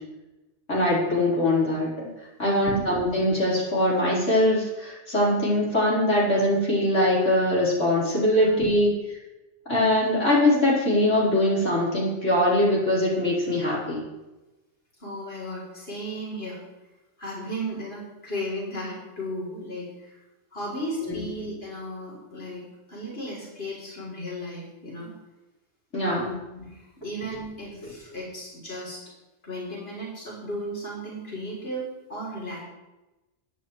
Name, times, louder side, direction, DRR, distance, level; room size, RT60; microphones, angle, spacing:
voice 1, 0.7-2.1 2.4-8.9 9.7-14.0 21.0-21.2 25.9-26.3, left 1 dB, 90° left, -7 dB, 5.0 m, -22 dB
voice 2, 2.4-2.8 8.3-8.5 15.0-16.6 17.2-20.2 20.5-25.1 26.0-29.0 29.4-32.6, equal, 55° left, -5 dB, 3.8 m, -35 dB
21.0 x 9.9 x 3.3 m, 1.0 s
omnidirectional pair, 1.2 m